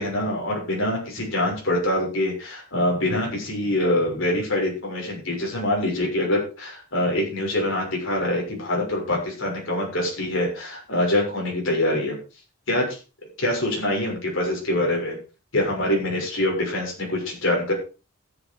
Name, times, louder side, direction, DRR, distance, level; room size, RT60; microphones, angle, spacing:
voice 1, 0.0-12.2 12.7-13.0 13.4-15.2 15.5-17.7, left 1 dB, 65° left, -1 dB, 6.6 m, -24 dB
13.5 x 8.8 x 4.8 m, 0.33 s
head